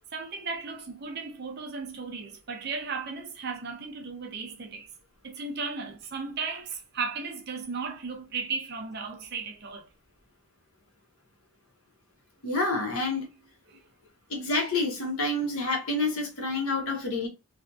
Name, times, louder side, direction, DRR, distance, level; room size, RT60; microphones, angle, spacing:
voice 1, 0.1-4.9 5.2-9.9 13.7-13.8, right 4 dB, 45° right, 0.5 m, -35 dB
voice 2, 12.4-13.3 14.3-17.3, left 2 dB, 70° left, 1.0 m, -28 dB
2.7 x 2.5 x 2.3 m
head